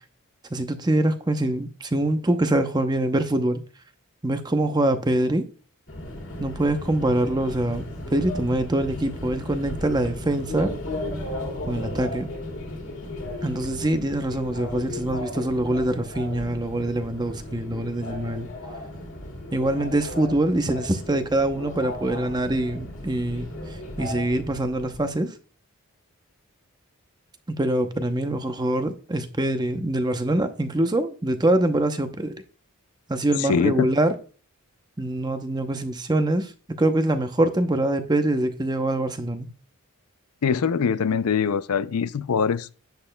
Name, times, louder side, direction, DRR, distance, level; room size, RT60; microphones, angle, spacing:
voice 1, 0.5-3.6 4.2-5.4 6.4-10.7 11.6-12.3 13.4-18.5 19.5-23.5 24.0-25.3 27.5-32.3 33.1-34.1 35.0-36.5 36.8-39.5, right 1 dB, 20° right, 0.7 m, -24 dB
Subway metro underground, 5.9-25.1, left 1 dB, 60° left, 2.0 m, -35 dB
voice 2, 33.4-33.9 40.4-42.7, left 6 dB, 80° left, 0.4 m, -23 dB
10.5 x 7.7 x 2.2 m
head